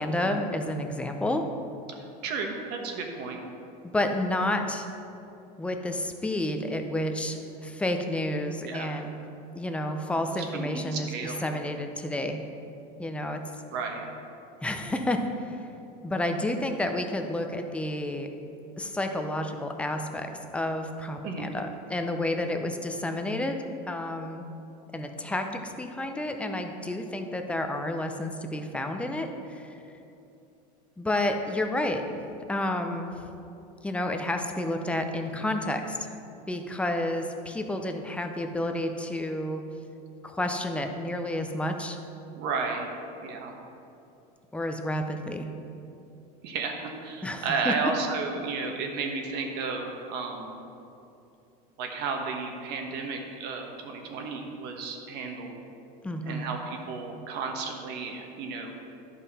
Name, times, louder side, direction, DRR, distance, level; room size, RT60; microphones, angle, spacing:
voice 1, 0.0-1.4 3.8-4.9 5.6-9.2 9.6-12.4 13.0-13.4 14.6-15.7 16.0-18.3 18.8-23.6 23.9-24.4 24.9-29.8 31.0-32.0 32.5-33.2 33.8-36.1 36.5-39.6 40.2-42.0 44.5-45.5 47.2-47.7 56.0-56.5, left 1 dB, 5° left, 5 dB, 0.6 m, -30 dB
voice 2, 1.9-3.4 8.6-8.9 10.5-11.4 13.7-14.1 21.2-21.5 42.4-42.9 43.2-43.6 46.4-50.6 51.8-55.6 56.3-58.7, right 4 dB, 55° right, 2 dB, 1.2 m, -33 dB
11.5 x 5.5 x 4.1 m, 2.8 s
supercardioid pair, 130°, 20 cm